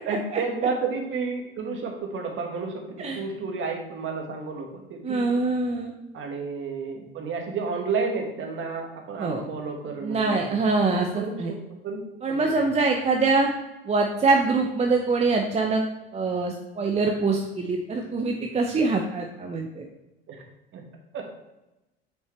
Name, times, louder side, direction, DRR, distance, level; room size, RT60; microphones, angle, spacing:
voice 1, 0.1-5.2 6.1-11.6 11.8-12.0 12.3-12.7 18.3-18.5 20.3-20.4 20.7-20.8 21.1-21.2, right 4 dB, 40° right, 2 dB, 1.6 m, -31 dB
voice 2, 5.0-5.9 9.2-9.4 10.0-11.5 12.2-13.5 13.9-15.8 16.1-19.8, right 3 dB, 20° right, 2 dB, 0.7 m, -24 dB
6.8 x 5.5 x 3.2 m, 0.97 s
figure-of-eight pair, 70°, 30 cm